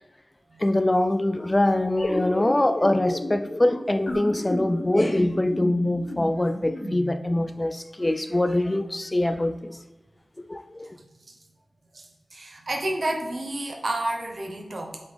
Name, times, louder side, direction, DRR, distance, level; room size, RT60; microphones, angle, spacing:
voice 1, 0.6-9.8 10.5-10.9, left 1 dB, 25° left, 0.3 m, -23 dB
sound 1, 2.0-7.4, left 1 dB, 75° left, 2.0 m, -32 dB
voice 2, 11.9-15.0, right 1 dB, 65° right, 1.1 m, -30 dB
7.8 x 3.9 x 3.5 m
wide cardioid pair, 70°, 0 cm